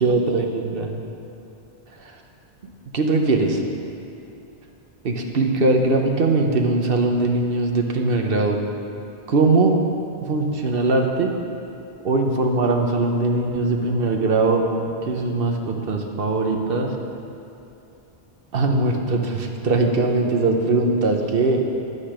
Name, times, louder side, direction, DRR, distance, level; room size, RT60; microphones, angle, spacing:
voice 1, 0.0-0.9 2.0-2.1 2.6-3.6 5.0-8.6 9.3-9.8 10.3-11.3 12.0-14.7 15.1-16.9 18.5-21.6, right 3 dB, 55° right, 2 dB, 1.1 m, -21 dB
10.5 x 8.8 x 5.0 m, 2.7 s
omnidirectional pair, 1.2 m